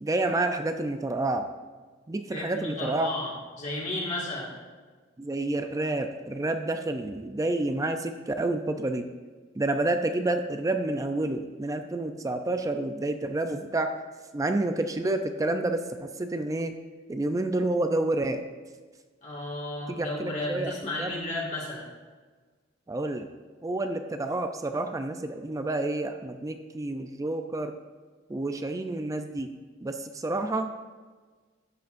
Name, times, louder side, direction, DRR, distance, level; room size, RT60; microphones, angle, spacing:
voice 1, 0.0-1.5 2.1-3.1 5.2-9.1 9.6-14.0 14.3-16.8 17.1-18.4 19.9-21.1 22.9-23.3 23.6-27.7 28.3-29.5 29.8-30.7, right 2 dB, 15° right, 7 dB, 0.4 m, -29 dB
voice 2, 2.3-4.5 19.2-21.9, left 2 dB, 40° left, -4 dB, 1.8 m, -33 dB
12.5 x 7.9 x 2.5 m, 1.4 s
head